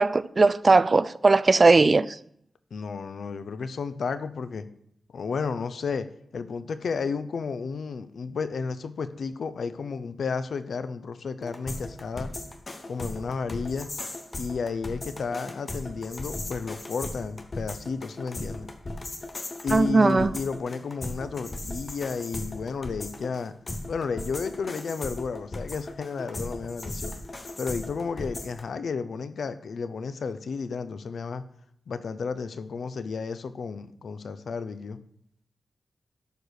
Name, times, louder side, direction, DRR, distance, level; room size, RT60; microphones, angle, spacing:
voice 1, 0.0-2.2 19.7-20.3, right 3 dB, 35° right, 0.3 m, -19 dB
voice 2, 2.7-4.6 5.1-6.1 6.3-12.3 12.9-13.9 14.3-18.7 19.6-23.5 23.9-27.1 27.6-31.4 31.9-35.0, left 5 dB, 70° left, 0.7 m, -32 dB
sound 1, 11.4-28.6, left 2 dB, 30° left, 1.0 m, -37 dB
12.0 x 4.6 x 6.5 m
wide cardioid pair, 120°, 0 cm